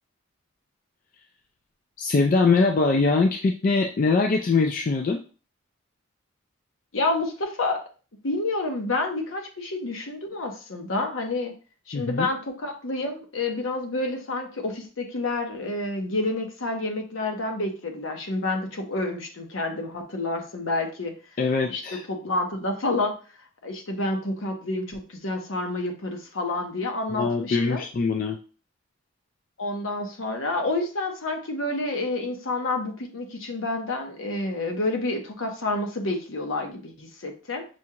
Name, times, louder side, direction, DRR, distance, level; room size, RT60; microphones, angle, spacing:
voice 1, 2.0-5.2 11.9-12.3 21.4-22.0 27.1-28.4, left 4 dB, 40° left, 3 dB, 0.3 m, -22 dB
voice 2, 6.9-7.8 8.2-11.5 11.9-21.1 21.7-23.1 23.6-27.8 29.6-37.6, left 2 dB, 70° left, 3 dB, 0.9 m, -29 dB
6.1 x 2.4 x 2.8 m, 0.37 s
head